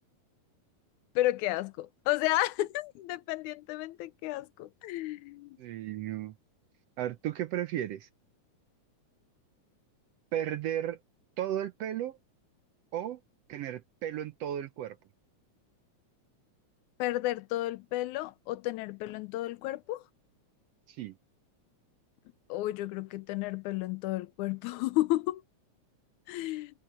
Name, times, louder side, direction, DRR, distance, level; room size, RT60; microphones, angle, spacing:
voice 1, 1.2-5.6 17.0-20.0 22.5-25.4 26.3-26.7, left 16 dB, 85° left, 2.1 m, -32 dB
voice 2, 5.6-6.3 7.0-8.1 10.3-11.0 11.4-12.2 12.9-13.2 13.5-15.0 20.9-21.1, right 11 dB, 70° right, 1.6 m, -34 dB
omnidirectional pair, 3.4 m